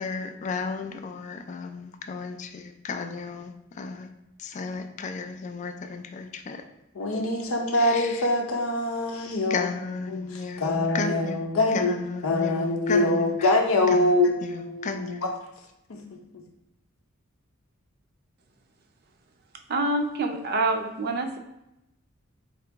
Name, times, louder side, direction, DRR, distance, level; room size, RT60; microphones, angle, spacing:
voice 1, 0.0-4.1 4.4-6.6 7.8-8.2 9.5-11.4 11.7-13.5 13.9-14.2 14.4-15.2, left 4 dB, 35° left, 7 dB, 0.3 m, -34 dB
voice 2, 6.9-9.7 10.1-11.9 12.2-15.3 15.9-16.4, left 2 dB, 85° left, 2 dB, 0.6 m, -24 dB
voice 3, 19.7-21.4, right 2 dB, 50° right, 5 dB, 0.4 m, -26 dB
4.0 x 2.8 x 3.4 m, 0.87 s
head